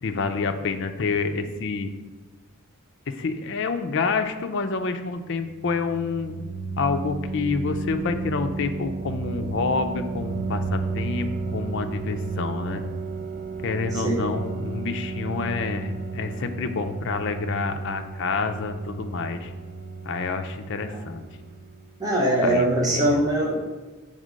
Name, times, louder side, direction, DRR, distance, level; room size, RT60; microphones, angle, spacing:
voice 1, 0.0-1.9 3.1-6.3 6.8-12.8 13.6-19.5 20.0-21.2 22.4-23.2, left 4 dB, 55° left, 7 dB, 0.5 m, -28 dB
sound 1, 5.3-22.0, right 4 dB, 40° right, 0.4 m, -33 dB
voice 2, 22.0-23.6, right 1 dB, 20° right, -3 dB, 1.0 m, -22 dB
6.6 x 3.7 x 5.1 m, 1.3 s
head